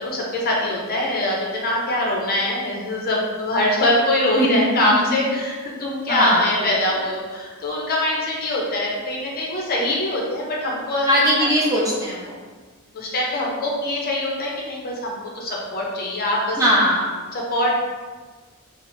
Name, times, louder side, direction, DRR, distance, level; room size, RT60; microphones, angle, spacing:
voice 1, 0.0-11.1 11.4-11.9 12.9-16.6 17.3-17.8, left 1 dB, 45° left, -3 dB, 0.6 m, -23 dB
voice 2, 4.4-4.8 5.1-5.2 6.1-6.4 11.1-12.4 16.6-17.1, equal, 15° right, -5 dB, 0.7 m, -19 dB
5.2 x 2.1 x 2.6 m, 1.4 s
head